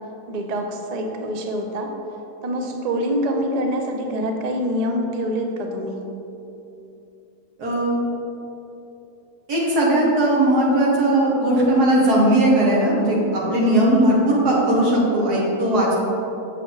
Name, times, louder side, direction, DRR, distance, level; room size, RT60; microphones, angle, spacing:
voice 1, 0.3-1.9 2.4-6.0 13.4-14.0, equal, 50° right, 3 dB, 0.5 m, -25 dB
voice 2, 7.6-8.0 9.5-15.9, right 1 dB, 80° right, -4 dB, 2.0 m, -18 dB
7.0 x 6.6 x 3.9 m, 2.9 s
omnidirectional pair, 1.7 m